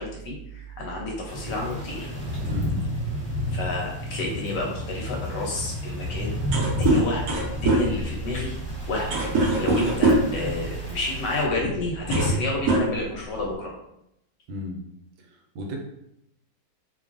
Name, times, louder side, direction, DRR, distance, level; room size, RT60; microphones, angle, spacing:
voice 1, 0.0-2.1 3.5-6.4 6.7-7.3 7.6-8.5 8.9-13.7, left 2 dB, 70° left, -1 dB, 1.1 m, -29 dB
sound 1, 1.3-11.4, equal, 20° left, 0.6 m, -32 dB
voice 2, 2.5-2.8 14.5-14.9 15.2-15.8, left 2 dB, 85° right, 1 dB, 1.4 m, -35 dB
sound 2, 4.5-13.4, left 1 dB, 55° left, 1.2 m, -39 dB
sound 3, 6.1-6.2 6.4-10.4 11.4-11.6 11.9-12.4 12.7-13.5, right 2 dB, 65° right, 1.0 m, -23 dB
3.0 x 2.3 x 2.4 m, 0.81 s
omnidirectional pair, 2.1 m